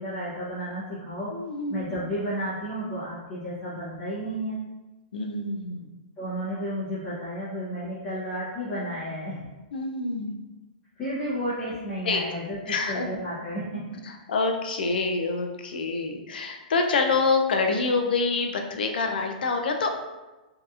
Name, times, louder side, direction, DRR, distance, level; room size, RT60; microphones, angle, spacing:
voice 1, 0.0-1.4 1.7-4.6 6.2-9.4 11.0-14.0, equal, 20° left, -12 dB, 0.8 m, -32 dB
voice 2, 1.3-1.8 5.1-5.9 9.7-10.4 12.0-12.3 12.7-13.2 14.0-19.9, left 4 dB, 85° left, 4 dB, 0.4 m, -26 dB
2.7 x 2.4 x 2.3 m, 1.1 s
hypercardioid pair, 165°, 5 cm